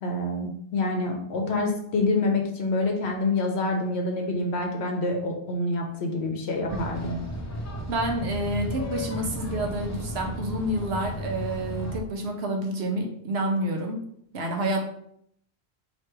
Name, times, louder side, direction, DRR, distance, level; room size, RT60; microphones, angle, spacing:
voice 1, 0.0-7.2, left 2 dB, 70° left, 2 dB, 1.0 m, -27 dB
sound 1, 6.7-12.0, equal, 25° left, 0.3 m, -34 dB
voice 2, 7.9-14.0 14.3-14.9, right 1 dB, 70° right, 2 dB, 1.0 m, -28 dB
3.1 x 2.9 x 4.4 m, 0.70 s
omnidirectional pair, 1.2 m